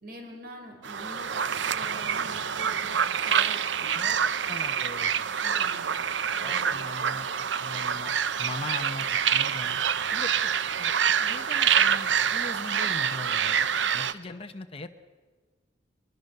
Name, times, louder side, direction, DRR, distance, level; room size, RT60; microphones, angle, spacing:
voice 1, 0.0-2.9 3.2-4.0 5.4-5.9 6.3-6.8, right 1 dB, 55° right, 3 dB, 4.0 m, -45 dB
sound 1, 0.8-14.1, right 8 dB, 85° right, 0.7 m, -26 dB
voice 2, 3.9-5.3 6.4-8.1 8.4-9.8 10.1-10.5 10.8-10.9 11.2-13.6 13.9-14.9, left 2 dB, 30° left, 6 dB, 1.0 m, -40 dB
22.5 x 22.5 x 6.8 m, 1.4 s
head